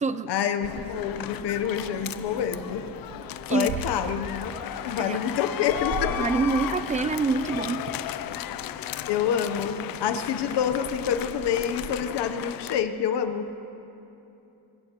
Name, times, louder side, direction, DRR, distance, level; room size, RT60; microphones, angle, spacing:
voice 1, 0.3-2.8 3.5-4.5 4.8-6.1 9.1-13.5, left 8 dB, 80° left, 8 dB, 0.9 m, -27 dB
sound 1, 0.6-12.8, left 12 dB, 60° left, 0.5 m, -35 dB
Meow, 0.6-11.9, right 4 dB, 80° right, 1.2 m, -41 dB
voice 2, 6.2-7.8, right 4 dB, 20° right, 12 dB, 0.3 m, -25 dB
24.5 x 18.5 x 2.9 m, 2.9 s
cardioid pair, 170°, 41 cm